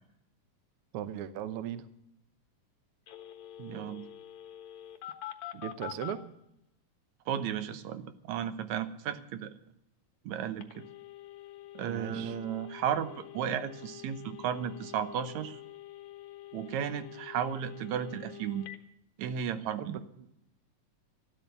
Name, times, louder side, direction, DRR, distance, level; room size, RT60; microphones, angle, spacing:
voice 1, 0.9-1.8 5.5-6.3 11.8-12.3 19.8-20.3, right 10 dB, 85° right, 11 dB, 1.2 m, -38 dB
Telephone, 3.1-6.2 10.6-18.8, left 13 dB, 65° left, 2.6 m, -46 dB
voice 2, 3.6-4.1 7.3-9.5 10.3-10.8 11.8-15.6 16.5-18.7 19.2-20.0, right 9 dB, 70° right, 10 dB, 2.0 m, -34 dB
13.5 x 12.5 x 6.7 m, 0.80 s
omnidirectional pair, 3.8 m